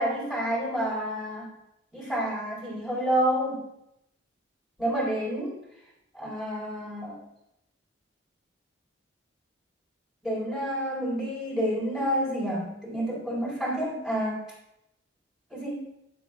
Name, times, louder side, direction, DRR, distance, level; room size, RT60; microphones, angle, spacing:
voice 1, 0.0-1.5 1.9-3.6 4.8-5.5 6.1-7.2 10.2-14.4 15.5-15.9, equal, ahead, -7 dB, 4.2 m, -29 dB
17.5 x 7.6 x 2.4 m, 0.82 s
head